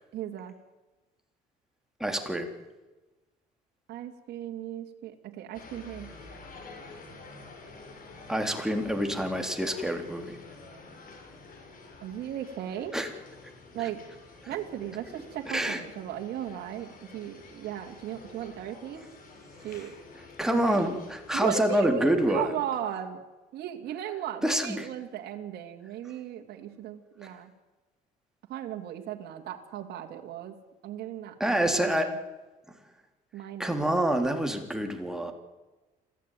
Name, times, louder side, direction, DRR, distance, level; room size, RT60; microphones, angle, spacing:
voice 1, 0.1-0.5 3.9-6.1 12.0-12.9 13.7-14.0 14.5-19.0 19.6-19.9 20.5-20.8 21.3-23.2 23.5-27.5 28.5-30.5 30.8-32.2 33.3-34.4, right 11 dB, 70° right, 2 dB, 2.7 m, -36 dB
voice 2, 2.0-2.5 8.3-10.4 12.9-13.1 15.5-15.8 20.4-22.5 24.4-24.9 31.4-32.1 33.6-35.3, right 1 dB, 5° right, 4 dB, 3.5 m, -27 dB
sound 1, 5.5-21.5, left 3 dB, 55° left, 7.1 m, -49 dB
26.5 x 16.0 x 9.3 m, 1.2 s
cardioid pair, 110°, 17 cm